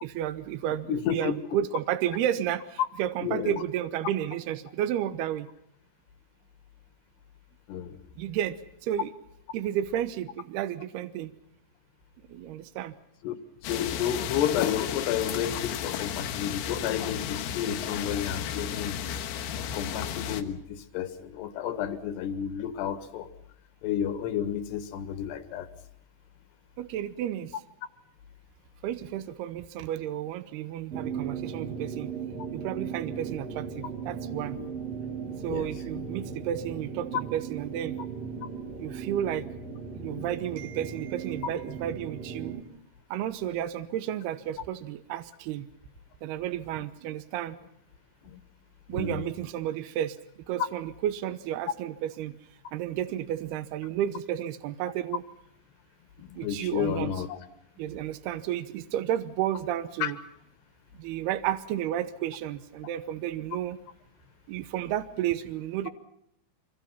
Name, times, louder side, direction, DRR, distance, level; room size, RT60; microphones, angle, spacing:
voice 1, 0.0-5.5 8.2-9.1 9.5-11.3 12.3-12.9 26.8-27.6 28.8-32.1 32.5-34.6 35.4-38.0 38.8-39.4 39.9-42.6 43.1-45.7 46.2-47.6 48.9-50.2 50.5-52.4 52.7-55.2 56.3-57.1 57.8-60.2 61.0-63.8 64.5-65.9, right 11 dB, 80° right, 11 dB, 2.3 m, -32 dB
voice 2, 0.9-1.3 3.2-3.5 7.7-8.0 13.2-13.4 13.6-23.3 23.8-25.7 35.2-36.0 40.2-40.3 48.2-48.4 48.9-49.3 56.2-57.4 60.0-60.1, left 9 dB, 65° left, 11 dB, 3.2 m, -31 dB
sound 1, 13.6-20.4, left 9 dB, 85° left, 4.1 m, -33 dB
sound 2, 30.9-42.6, right 6 dB, 50° right, 2.2 m, -37 dB
26.0 x 24.5 x 5.8 m, 0.77 s
omnidirectional pair, 6.0 m